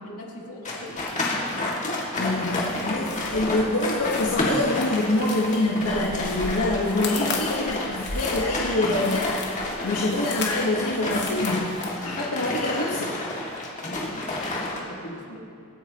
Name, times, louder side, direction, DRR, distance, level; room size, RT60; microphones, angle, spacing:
voice 1, 0.0-2.0 2.4-2.8 3.3-3.6 13.9-15.4, left 1 dB, 70° left, -2 dB, 2.1 m, -40 dB
sound 1, 0.6-14.8, left 2 dB, 35° left, 2.2 m, -30 dB
voice 2, 2.2-9.4 9.8-11.7 12.0-13.1, left 2 dB, 90° left, -4 dB, 1.4 m, -25 dB
sound 2, 2.3-11.9, left 3 dB, 55° left, 1.8 m, -37 dB
24.5 x 9.5 x 3.0 m, 2.4 s
head